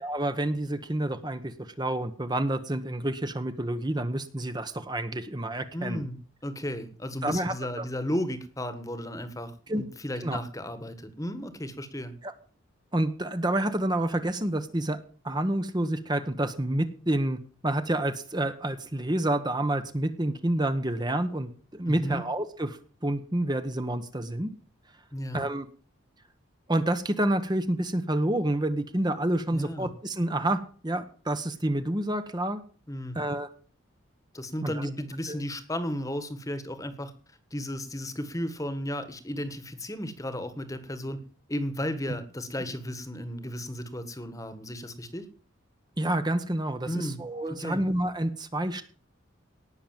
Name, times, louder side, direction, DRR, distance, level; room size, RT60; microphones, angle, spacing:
voice 1, 0.0-6.0 7.2-7.8 9.7-9.8 10.2-10.4 12.2-12.3 12.9-15.0 15.2-17.4 17.6-24.5 25.3-25.7 26.7-32.6 33.1-33.5 34.6-34.9 35.3-35.4 46.0-48.8, right 1 dB, 20° right, 9 dB, 1.0 m, -28 dB
voice 2, 5.7-12.1 21.9-22.2 25.1-25.4 29.5-29.9 32.9-33.2 34.3-37.1 37.5-41.2 41.5-45.3 46.9-47.2 47.5-47.8, equal, 15° left, 11 dB, 1.5 m, -34 dB
18.5 x 6.8 x 7.4 m, 0.42 s
head